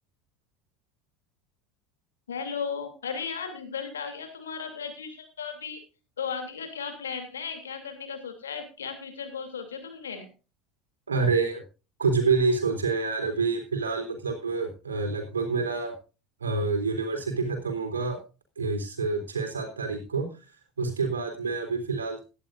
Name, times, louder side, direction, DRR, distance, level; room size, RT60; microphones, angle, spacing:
voice 1, 2.3-5.8 6.2-10.3, left 6 dB, 85° left, 6 dB, 2.9 m, -35 dB
voice 2, 11.1-11.6 12.0-15.9 16.4-18.2 18.6-20.3 20.8-22.2, right 4 dB, 90° right, 4 dB, 3.5 m, -27 dB
17.5 x 11.5 x 2.5 m, 0.32 s
hypercardioid pair, 75°, 0 cm